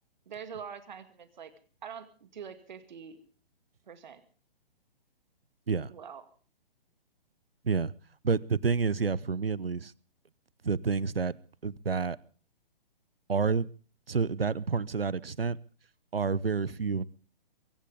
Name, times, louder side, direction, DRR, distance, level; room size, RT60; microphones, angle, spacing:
voice 1, 0.3-1.5 1.8-3.2 3.9-4.2 5.9-6.2, right 7 dB, 50° right, 11 dB, 2.1 m, -44 dB
voice 2, 8.2-9.9 10.6-11.4 11.6-12.2 13.3-13.7 14.1-15.6 16.1-17.1, right 5 dB, 80° right, 24 dB, 0.9 m, -29 dB
23.5 x 16.0 x 3.5 m, 0.40 s
figure-of-eight pair, 130°, 29 cm